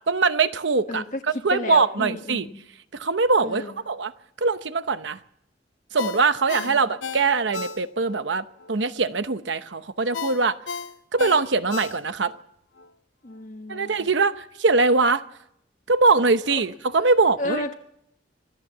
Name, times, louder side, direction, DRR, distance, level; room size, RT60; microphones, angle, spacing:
voice 1, 0.1-1.0 1.4-2.5 2.9-4.1 4.4-5.2 5.9-10.6 11.1-12.3 13.7-15.2 15.9-17.6, right 4 dB, 70° right, 11 dB, 0.9 m, -22 dB
voice 2, 0.9-1.2 1.5-2.6 3.4-3.7 6.6-6.9 13.2-13.9 16.5-16.6 17.4-17.7, left 2 dB, 40° left, 2 dB, 1.3 m, -32 dB
Ringtone, 6.0-8.2 8.6-8.7 10.1-12.4 12.8-12.9, left 5 dB, 85° left, 1.0 m, -34 dB
25.5 x 16.0 x 7.3 m, 0.77 s
head